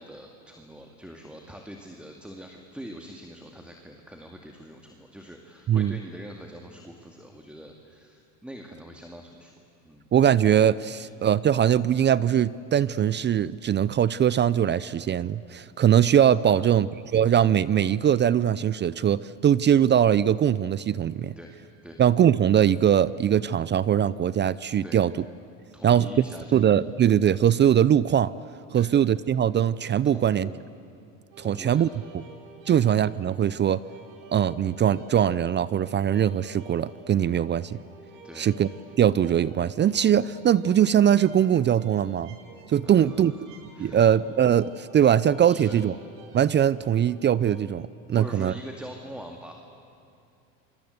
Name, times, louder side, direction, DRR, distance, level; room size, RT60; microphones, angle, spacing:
voice 1, 0.0-9.5 9.8-10.0 11.0-11.1 16.5-16.9 21.4-21.5 21.8-22.0 24.8-25.0 25.7-26.6 28.7-28.9 30.0-30.6 31.4-32.0 32.6-32.8 38.2-38.5 42.8-44.0 45.5-45.8 48.1-49.5, equal, 5° right, 2 dB, 2.3 m, -43 dB
voice 2, 10.1-21.3 22.0-25.1 25.8-26.1 26.5-28.3 28.7-30.5 31.4-31.9 32.1-32.2 32.7-33.8 34.3-37.8 38.4-38.7 39.0-42.3 42.7-43.3 43.8-46.0 46.3-48.5, right 9 dB, 30° right, 19 dB, 0.5 m, -21 dB
sound 1, 31.3-47.6, right 3 dB, 80° right, 4.3 m, -50 dB
27.5 x 25.5 x 8.0 m, 2.8 s
supercardioid pair, 100°, 39 cm